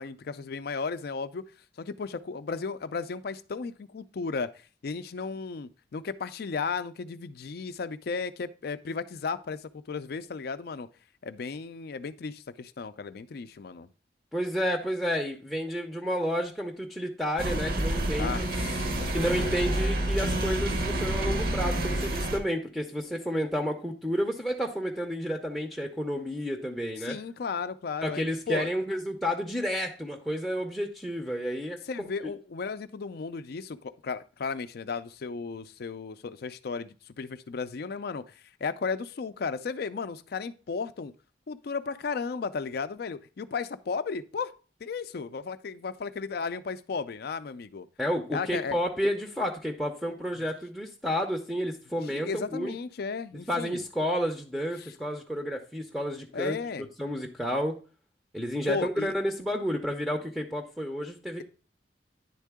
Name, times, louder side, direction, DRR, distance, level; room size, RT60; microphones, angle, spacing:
voice 1, 0.0-1.4 1.8-10.9 11.2-13.9 18.2-19.6 27.0-28.7 31.9-41.1 41.5-44.5 44.8-47.9 48.3-48.8 50.4-50.5 52.0-53.8 54.8-54.9 56.3-56.9 58.7-59.1, left 5 dB, 60° left, 0.4 m, -35 dB
voice 2, 14.3-18.5 19.1-27.2 28.0-32.1 48.0-52.7 53.5-56.6 57.0-57.7 58.3-61.4, equal, ahead, 0.5 m, -31 dB
sound 1, 17.4-22.4, right 1 dB, 55° right, 0.9 m, -28 dB
9.9 x 3.7 x 3.5 m
head